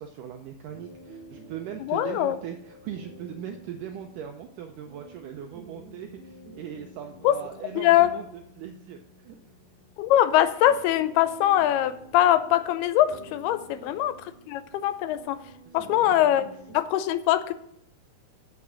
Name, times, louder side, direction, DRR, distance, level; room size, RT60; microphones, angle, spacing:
voice 1, 0.0-9.4 13.6-13.9 15.9-16.5, right 9 dB, 80° right, 4 dB, 2.0 m, -40 dB
sound 1, 0.7-16.8, right 1 dB, 50° right, 2.6 m, -49 dB
voice 2, 1.8-2.4 7.2-7.4 7.8-8.1 10.0-15.4 15.7-16.5 16.7-17.5, left 12 dB, 85° left, 12 dB, 2.6 m, -22 dB
8.4 x 6.1 x 7.4 m, 0.70 s
omnidirectional pair, 4.4 m